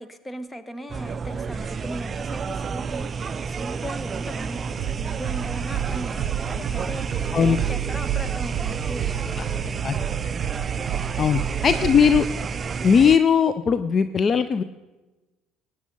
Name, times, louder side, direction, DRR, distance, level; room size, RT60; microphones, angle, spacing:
voice 1, 0.0-10.2 11.2-11.3, equal, 15° left, 11 dB, 1.1 m, -38 dB
sound 1, 0.9-13.2, right 5 dB, 35° right, 0.4 m, -30 dB
sound 2, 4.8-12.3, right 11 dB, 60° right, 0.9 m, -30 dB
voice 2, 11.2-12.3 12.8-14.6, left 6 dB, 40° left, 13 dB, 0.5 m, -19 dB
14.5 x 9.6 x 5.4 m, 1.1 s
supercardioid pair, 85°, 0 cm